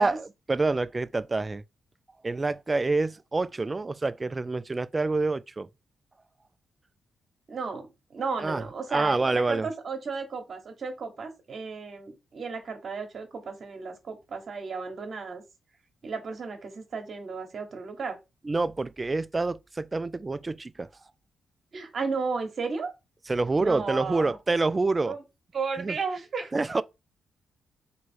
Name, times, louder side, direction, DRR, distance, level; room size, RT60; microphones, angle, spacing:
voice 1, 0.0-1.6 2.2-5.7 8.4-8.6 8.9-9.7 18.4-20.9 23.3-25.1 25.8-25.9 26.5-26.8, right 3 dB, 25° right, 0.3 m, -27 dB
voice 2, 7.5-15.4 16.0-18.2 21.7-22.9 23.6-24.4 25.1-25.2 25.5-26.5, right 4 dB, 55° right, 1.2 m, -34 dB
3.0 x 3.0 x 4.4 m
cardioid pair, 80°, 0 cm